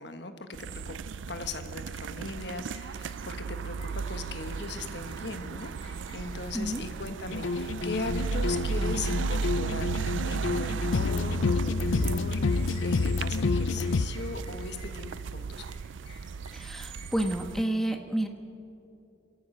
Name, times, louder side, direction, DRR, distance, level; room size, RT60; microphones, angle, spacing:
voice 1, 0.0-15.6, left 3 dB, 60° left, 8 dB, 1.4 m, -39 dB
sound 1, 0.5-17.6, right 5 dB, 75° right, 0.4 m, -35 dB
sound 2, 1.4-1.5 2.4-9.9 10.2-13.3 13.5-17.4, left 3 dB, 30° left, 5.1 m, -55 dB
sound 3, 7.3-14.1, left 4 dB, 90° left, 0.5 m, -29 dB
voice 2, 16.5-18.3, right 1 dB, ahead, 4 dB, 1.3 m, -30 dB
27.5 x 13.5 x 7.8 m, 2.7 s
head